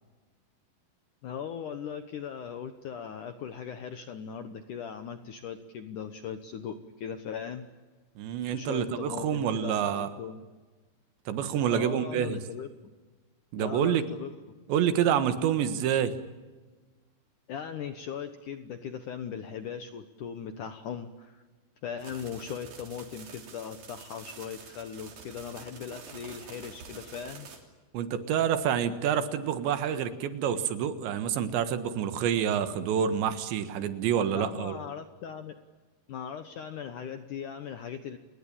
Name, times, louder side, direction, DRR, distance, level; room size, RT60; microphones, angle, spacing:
voice 1, 1.2-7.7 8.5-10.4 11.7-12.7 13.6-14.3 17.5-21.4 21.8-27.5 34.3-35.6 36.1-38.2, left 7 dB, 70° left, 9 dB, 2.0 m, -39 dB
voice 2, 8.2-10.1 11.3-12.4 13.5-14.1 14.7-16.1 27.9-34.8, right 9 dB, 80° right, 11 dB, 3.8 m, -27 dB
sound 1, 22.0-27.6, right 5 dB, 55° right, 4.9 m, -48 dB
30.0 x 20.0 x 8.8 m, 1.3 s
omnidirectional pair, 5.1 m